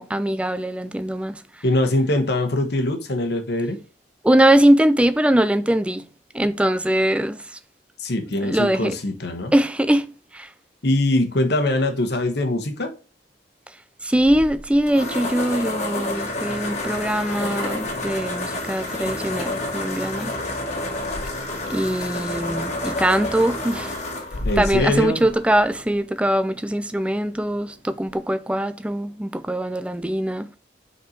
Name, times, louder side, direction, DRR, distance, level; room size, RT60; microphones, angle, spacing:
voice 1, 0.0-1.4 4.2-6.0 6.3-7.5 8.4-9.0 9.5-10.5 14.0-20.3 21.7-24.0 24.6-30.6, right 1 dB, 5° right, 0.4 m, -21 dB
voice 2, 1.6-3.8 8.0-9.5 10.8-12.9 24.4-25.3, left 1 dB, 65° left, 1.2 m, -22 dB
sound 1, 14.2-26.0, left 2 dB, 40° left, 1.8 m, -29 dB
sound 2, 16.7-24.0, equal, 20° left, 1.4 m, -41 dB
5.3 x 4.4 x 4.3 m
head